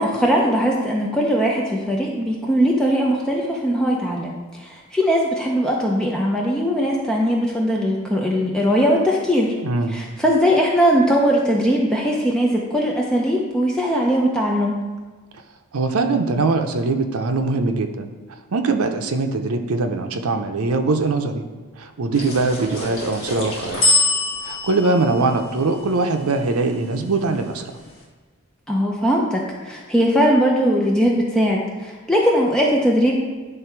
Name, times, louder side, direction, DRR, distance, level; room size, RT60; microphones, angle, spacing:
voice 1, 0.0-4.3 4.6-9.5 9.9-14.8 28.7-33.1, equal, 5° left, -2 dB, 0.5 m, -20 dB
voice 2, 9.6-10.0 15.7-18.1 18.5-21.4 21.8-23.9 24.4-27.8, right 3 dB, 80° right, 5 dB, 0.6 m, -22 dB
sound 1, 22.1-26.7, left 2 dB, 55° left, 1.7 m, -25 dB
9.9 x 3.3 x 4.5 m, 1.3 s
head